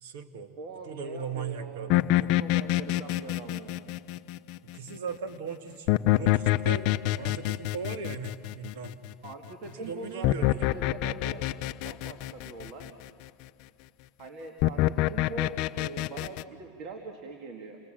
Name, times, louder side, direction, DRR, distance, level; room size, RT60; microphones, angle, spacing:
voice 1, 0.0-0.5 0.8-2.4 4.6-6.9 7.2-9.0 9.6-10.7, right 5 dB, 70° right, 8 dB, 1.5 m, -38 dB
voice 2, 0.6-3.9 9.2-11.4 11.8-13.0 14.2-17.8, right 3 dB, 50° right, 3 dB, 2.0 m, -43 dB
sound 1, 1.9-4.8 5.9-9.3 10.2-12.9 14.6-16.4, left 15 dB, 55° left, 0.5 m, -26 dB
28.0 x 20.5 x 7.6 m, 2.3 s
supercardioid pair, 125°, 0 cm